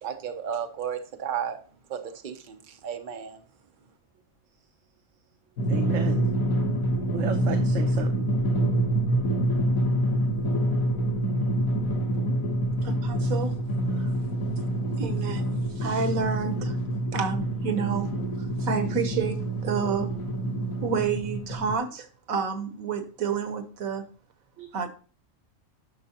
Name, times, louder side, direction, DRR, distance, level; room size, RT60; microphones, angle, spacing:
voice 1, 0.0-1.6 1.9-3.4, right 8 dB, 40° right, 0.9 m, -33 dB
Drum, 5.6-21.7, right 1 dB, 90° left, 1.6 m, -26 dB
voice 2, 5.7-6.2 7.1-8.3 19.7-19.9 24.6-24.9, right 9 dB, 70° right, 1.0 m, -35 dB
voice 3, 12.8-13.5 13.9-14.1 15.0-16.8 17.1-20.2 20.8-24.0 24.7-24.9, right 6 dB, 90° right, 1.4 m, -30 dB
10.5 x 6.3 x 2.9 m
omnidirectional pair, 1.4 m